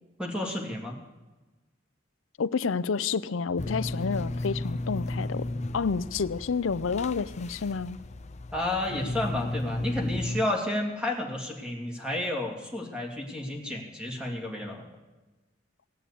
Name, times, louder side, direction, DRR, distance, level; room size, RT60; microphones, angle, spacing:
voice 1, 0.2-1.0 8.5-14.8, left 1 dB, 5° right, -1 dB, 2.7 m, -31 dB
voice 2, 2.4-5.5 5.7-8.0, left 5 dB, 85° left, 16 dB, 0.6 m, -29 dB
sound 1, 3.6-10.4, left 1 dB, 35° left, 0.6 m, -34 dB
18.0 x 8.7 x 8.4 m, 1.2 s
head